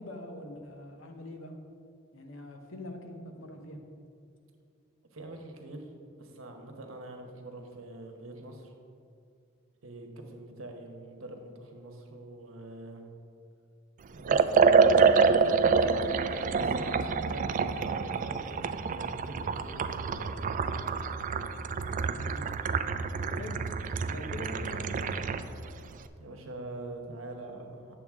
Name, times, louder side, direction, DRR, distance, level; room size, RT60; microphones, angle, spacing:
voice 1, 0.0-1.6 2.1-3.8 22.1-22.6 23.2-23.6 24.1-25.2, left 1 dB, 75° left, 3 dB, 1.0 m, -43 dB
voice 2, 5.1-5.9 6.2-8.7 9.8-13.0 14.1-20.4 26.2-28.0, right 2 dB, 85° right, 3 dB, 1.0 m, -44 dB
Liquid, 14.2-25.5, right 5 dB, 40° right, 0.3 m, -27 dB
9.0 x 6.8 x 3.6 m, 2.5 s
head